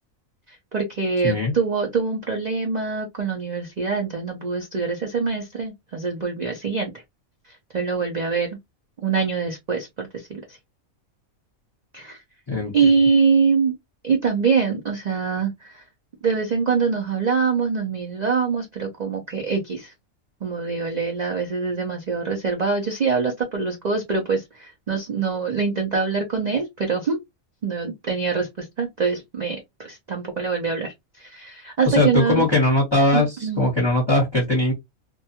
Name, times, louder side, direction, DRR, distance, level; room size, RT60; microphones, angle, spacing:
voice 1, 0.5-6.9 7.5-8.6 9.0-10.6 11.9-12.2 12.7-13.7 14.0-15.8 16.2-19.9 20.4-27.2 27.6-32.5 33.1-33.7, right 5 dB, 55° right, 0.5 m, -24 dB
voice 2, 1.2-1.5 12.5-12.7 31.9-34.7, left 2 dB, 20° left, 0.9 m, -20 dB
2.5 x 2.2 x 2.7 m
omnidirectional pair, 1.5 m